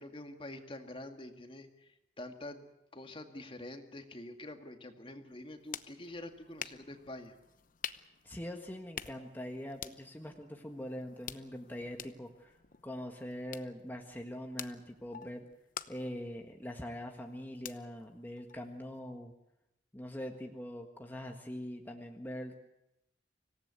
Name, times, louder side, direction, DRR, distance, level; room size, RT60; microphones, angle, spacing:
voice 1, 0.0-2.7 2.9-7.3, left 1 dB, 30° left, 6 dB, 2.0 m, -46 dB
sound 1, 5.3-19.0, left 9 dB, 50° left, 0.9 m, -49 dB
voice 2, 8.2-12.6 12.8-15.5 15.9-19.3 19.9-22.5, equal, 10° left, 2 dB, 1.6 m, -43 dB
25.5 x 17.5 x 8.4 m, 0.88 s
head